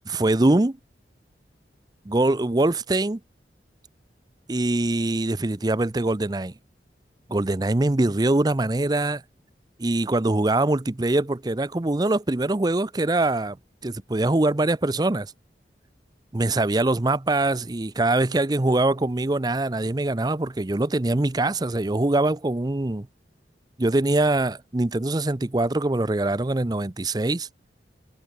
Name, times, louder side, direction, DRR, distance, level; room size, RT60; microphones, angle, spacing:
voice 1, 0.1-0.8 2.1-3.2 4.5-6.5 7.3-9.2 9.8-13.6 13.8-15.3 16.3-23.1 23.8-27.5, right 2 dB, 25° right, 0.6 m, -23 dB
head